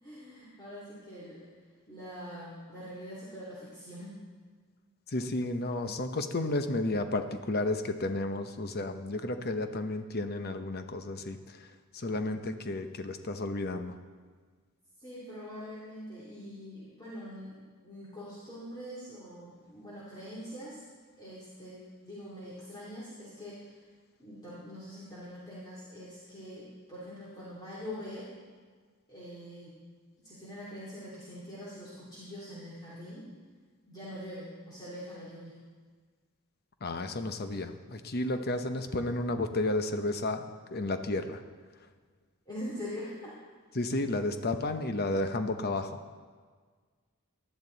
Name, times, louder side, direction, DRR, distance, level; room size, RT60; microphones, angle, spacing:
voice 1, 0.0-1.5 1.9-4.2 15.0-20.8 21.2-23.8 24.2-28.3 29.1-29.7 30.2-33.3 33.9-35.6 42.4-43.3, equal, 20° left, -10 dB, 3.0 m, -44 dB
voice 2, 5.1-11.7 11.9-14.0 36.8-40.5 40.7-41.4 43.7-46.0, left 2 dB, 45° left, 8 dB, 0.9 m, -32 dB
18.5 x 11.5 x 4.0 m, 1.5 s
head